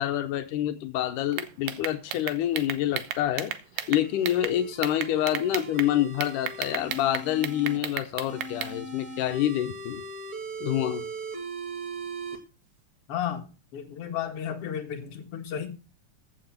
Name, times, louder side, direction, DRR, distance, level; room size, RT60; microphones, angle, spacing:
voice 1, 0.0-3.5 3.9-10.0 10.6-11.1, left 12 dB, 85° left, 9 dB, 2.3 m, -27 dB
sound 1, 1.3-4.5 4.8-5.9 6.2-8.7, right 11 dB, 85° right, 2.4 m, -33 dB
sound 2, 3.8-7.8 8.3-12.4, right 3 dB, 30° right, 2.2 m, -39 dB
voice 2, 13.1-15.7, left 9 dB, 50° left, 4 dB, 2.4 m, -33 dB
14.5 x 6.1 x 5.7 m, 0.32 s
omnidirectional pair, 3.6 m